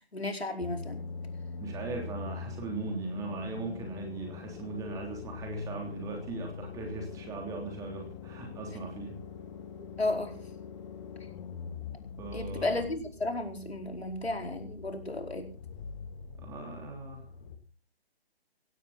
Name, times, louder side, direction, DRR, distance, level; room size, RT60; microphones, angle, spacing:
voice 1, 0.1-1.0 10.0-10.3 12.3-15.5, left 2 dB, 75° left, 4 dB, 4.7 m, -33 dB
sound 1, 0.6-17.6, left 6 dB, 30° left, 2.0 m, -43 dB
voice 2, 1.6-9.1 12.2-12.9 16.3-17.2, right 3 dB, 10° right, 2 dB, 3.3 m, -39 dB
17.0 x 16.5 x 4.1 m, 0.35 s
figure-of-eight pair, 140°, 32 cm